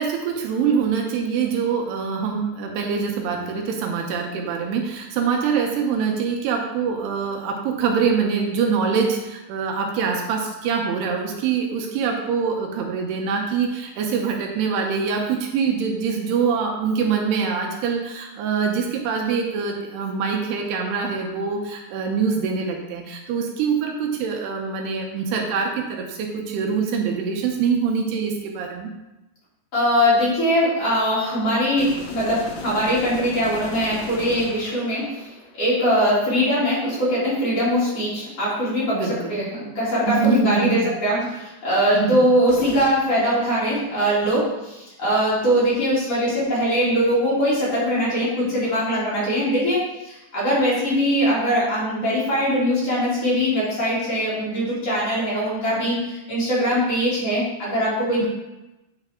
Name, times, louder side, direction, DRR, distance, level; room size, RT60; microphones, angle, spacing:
voice 1, 0.0-28.9 38.9-39.4 40.1-40.8 41.1-41.3 41.9-42.2 58.2-58.3, right 6 dB, 80° right, 2 dB, 2.7 m, -24 dB
voice 2, 29.7-35.3 35.6-58.3, equal, 40° left, -9 dB, 3.2 m, -21 dB
sound 1, 31.8-35.8 42.5-42.9, left 3 dB, 70° left, 2.2 m, -37 dB
9.0 x 4.6 x 3.5 m, 1.0 s
omnidirectional pair, 4.9 m